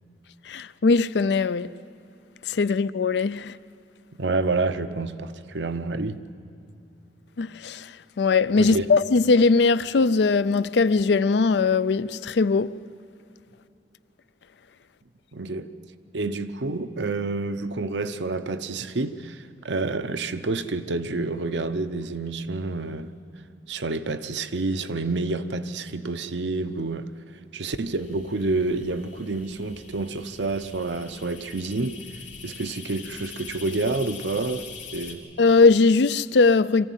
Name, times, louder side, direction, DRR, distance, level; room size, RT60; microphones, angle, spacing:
voice 1, 0.5-1.7 2.5-3.6 7.4-12.8 35.4-36.9, left 4 dB, 70° left, 0.5 m, -20 dB
voice 2, 4.2-6.2 8.5-8.9 15.3-15.7 16.1-23.1 23.7-27.1 27.5-32.0 32.4-35.2, right 3 dB, 80° right, 0.8 m, -28 dB
sound 1, 27.9-35.1, left 6 dB, 85° left, 3.4 m, -43 dB
23.0 x 15.0 x 9.2 m
head